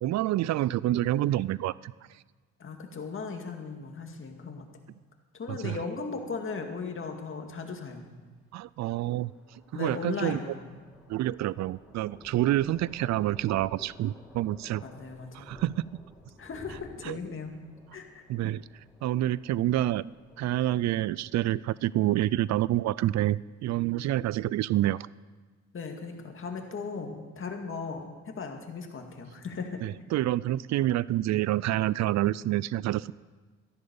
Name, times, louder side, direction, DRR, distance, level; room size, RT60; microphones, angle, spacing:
voice 1, 0.0-1.9 5.5-5.8 8.5-9.3 9.8-10.4 11.1-14.8 15.3-15.7 17.1-17.2 18.3-18.6 19.0-20.1 20.4-25.1 29.8-33.1, right 14 dB, 65° right, 21 dB, 0.4 m, -27 dB
voice 2, 2.6-4.7 5.4-8.0 9.7-10.7 12.6-12.7 14.8-15.5 16.4-17.5 17.9-18.2 25.7-29.8, left 4 dB, 45° left, 3 dB, 2.1 m, -37 dB
Thunder, 7.7-24.5, left 1 dB, ahead, 4.5 m, -53 dB
14.0 x 10.5 x 7.0 m, 1.3 s
cardioid pair, 90°, 30 cm